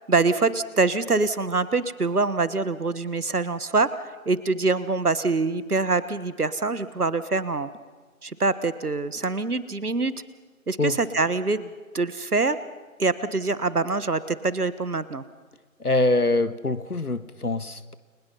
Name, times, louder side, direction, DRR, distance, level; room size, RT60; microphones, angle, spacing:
voice 1, 0.1-3.9 4.2-7.7 8.2-10.1 10.7-12.6 13.0-15.2, right 3 dB, 85° right, 14 dB, 1.5 m, -24 dB
voice 2, 15.8-17.9, left 2 dB, 90° left, 13 dB, 1.7 m, -24 dB
30.0 x 23.5 x 5.6 m, 1.4 s
figure-of-eight pair, 180°, 44 cm